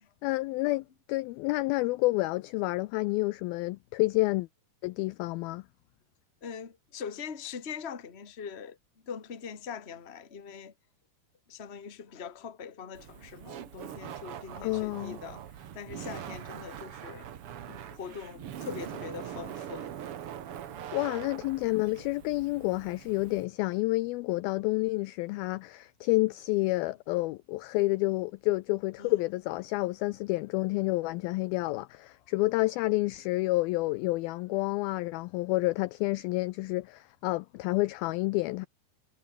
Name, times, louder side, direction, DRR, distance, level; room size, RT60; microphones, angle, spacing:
voice 1, 0.2-4.5 4.8-5.6 14.6-15.2 20.9-38.7, left 21 dB, 85° left, 2.1 m, -29 dB
voice 2, 6.4-8.8 9.0-10.7 11.5-17.3 17.6-19.9 20.5-20.9 29.0-29.1, left 6 dB, 30° left, 1.2 m, -42 dB
Laughter, 12.9-23.5, right 9 dB, 80° right, 1.3 m, -42 dB
omnidirectional pair, 4.8 m